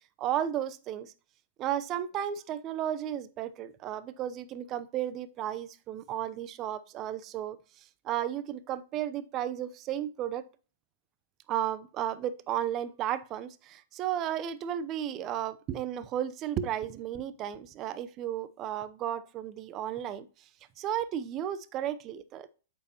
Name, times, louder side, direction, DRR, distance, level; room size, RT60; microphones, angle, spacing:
voice 1, 0.2-1.1 1.6-10.4 11.5-20.3 20.8-22.5, right 11 dB, 30° right, 0.7 m, -34 dB
8.5 x 7.5 x 2.9 m
figure-of-eight pair, 110°, 0 cm